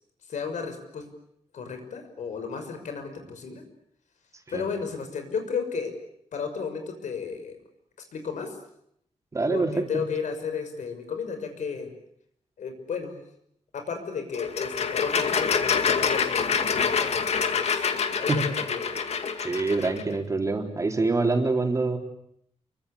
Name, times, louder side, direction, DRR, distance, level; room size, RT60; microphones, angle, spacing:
voice 1, 0.3-1.1 1.5-3.6 4.5-5.9 6.3-7.6 8.1-8.6 9.5-11.9 12.6-13.1 13.7-17.9 18.2-18.8, left 6 dB, 90° left, 7 dB, 6.1 m, -33 dB
voice 2, 9.3-9.8 18.3-18.4 19.4-22.0, right 3 dB, 25° right, 3 dB, 4.1 m, -25 dB
sound 1, 14.3-20.0, left 6 dB, 60° left, 2.2 m, -26 dB
29.0 x 24.0 x 8.6 m, 0.72 s
wide cardioid pair, 160°, 12 cm